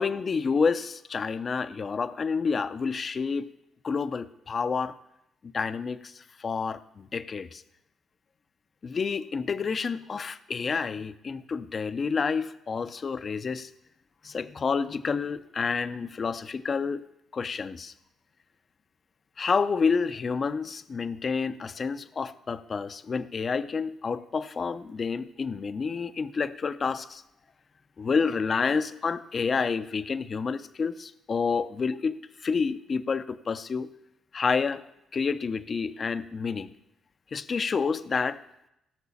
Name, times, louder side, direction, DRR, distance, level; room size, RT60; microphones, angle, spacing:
voice 1, 0.0-3.5 3.8-4.9 5.4-7.6 8.8-13.7 14.2-17.0 17.3-17.9 19.4-27.2 28.0-33.9 34.3-34.8 35.1-36.7 37.3-38.4, left 5 dB, 40° left, 12 dB, 0.6 m, -29 dB
17.0 x 6.1 x 7.2 m, 0.84 s
cardioid pair, 90°, 0 cm